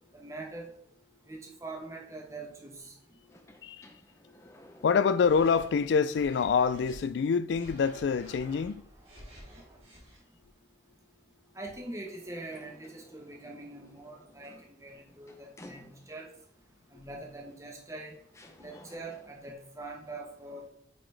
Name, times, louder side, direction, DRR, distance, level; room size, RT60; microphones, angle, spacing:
voice 1, 0.1-0.7 1.3-2.9 11.5-16.3 16.9-18.2 18.6-20.7, right 2 dB, 15° right, 1.0 m, -43 dB
sound 1, 3.2-6.2 6.6-6.7 12.1-16.4 17.5-17.6 18.3-19.5, left 1 dB, 15° left, 0.5 m, -56 dB
voice 2, 4.8-8.9, left 6 dB, 75° left, 0.3 m, -26 dB
sound 2, 5.1-7.0 7.5-10.2, equal, 35° right, 2.1 m, -51 dB
8.7 x 3.9 x 3.3 m
head